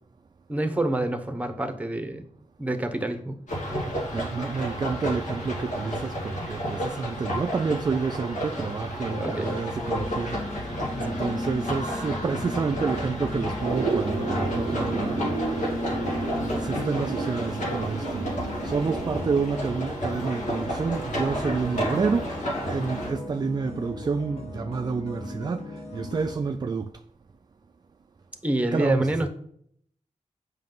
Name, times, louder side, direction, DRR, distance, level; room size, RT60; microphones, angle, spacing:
voice 1, 0.5-2.3 2.6-3.4 9.1-9.5 28.4-29.3, right 1 dB, 10° right, 0.9 m, -27 dB
sound 1, 3.5-23.1, equal, 75° left, 2.3 m, -32 dB
voice 2, 4.1-26.9 28.7-29.3, right 5 dB, 35° right, 0.3 m, -29 dB
sound 2, 9.1-26.4, left 2 dB, 60° left, 1.5 m, -36 dB
sound 3, 13.7-19.2, right 5 dB, 90° right, 0.6 m, -32 dB
7.4 x 5.5 x 3.9 m
wide cardioid pair, 100°, 12 cm